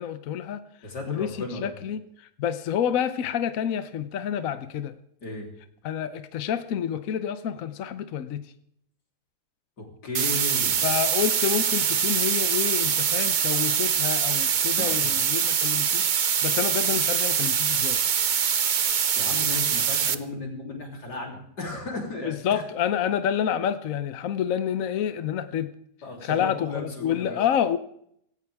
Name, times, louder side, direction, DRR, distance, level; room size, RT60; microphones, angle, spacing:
voice 1, 0.0-0.6 1.1-1.3 1.6-5.0 5.8-8.4 10.8-18.0 22.2-25.7 26.2-27.8, left 9 dB, 65° left, 11 dB, 1.1 m, -28 dB
voice 2, 0.8-1.7 5.2-5.5 9.8-10.9 14.8-15.1 19.2-22.6 26.0-27.4, left 2 dB, 90° left, 0 dB, 4.0 m, -35 dB
sound 1, 10.1-20.1, right 8 dB, 85° right, 0.4 m, -24 dB
18.0 x 17.0 x 3.5 m, 0.71 s
omnidirectional pair, 1.7 m